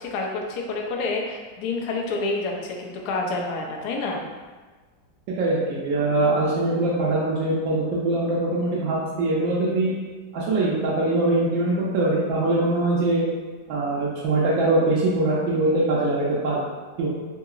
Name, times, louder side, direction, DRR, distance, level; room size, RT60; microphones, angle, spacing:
voice 1, 0.0-4.2, left 3 dB, 70° left, 0 dB, 1.0 m, -28 dB
voice 2, 5.4-9.9 10.3-13.2 13.7-16.6 17.0-17.1, right 2 dB, 85° right, -7 dB, 1.4 m, -22 dB
3.7 x 2.8 x 2.4 m, 1.4 s
omnidirectional pair, 2.0 m